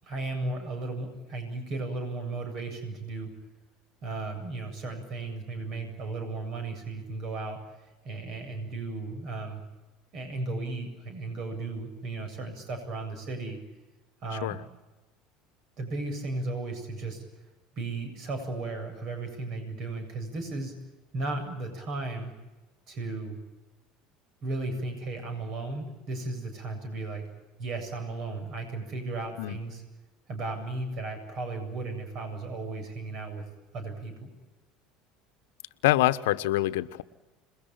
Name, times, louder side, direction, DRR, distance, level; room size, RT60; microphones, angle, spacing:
voice 1, 0.0-3.3 4.0-7.6 8.0-9.6 10.1-13.6 14.2-14.6 15.8-17.2 17.8-20.8 21.1-22.3 22.9-23.4 24.4-27.3 27.6-29.8 30.3-33.4 33.7-34.3, right 2 dB, 55° right, 6 dB, 7.8 m, -35 dB
voice 2, 35.8-37.0, left 16 dB, 75° left, 13 dB, 1.1 m, -25 dB
27.5 x 22.0 x 9.1 m, 1.1 s
hypercardioid pair, 75°, 0 cm